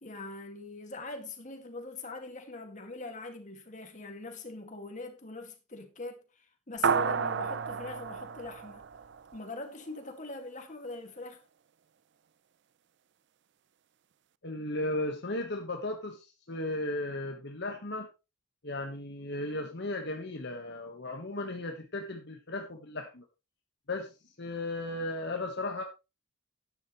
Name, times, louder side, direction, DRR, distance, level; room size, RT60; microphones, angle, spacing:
voice 1, 0.0-8.8 9.3-11.4, left 2 dB, 40° left, 2.2 m, -42 dB
sound 1, 6.8-9.5, right 6 dB, 60° right, 0.5 m, -31 dB
voice 2, 14.4-18.1 18.6-23.2 23.9-24.1 24.4-25.8, left 2 dB, 60° left, 1.4 m, -35 dB
12.0 x 9.9 x 3.2 m
head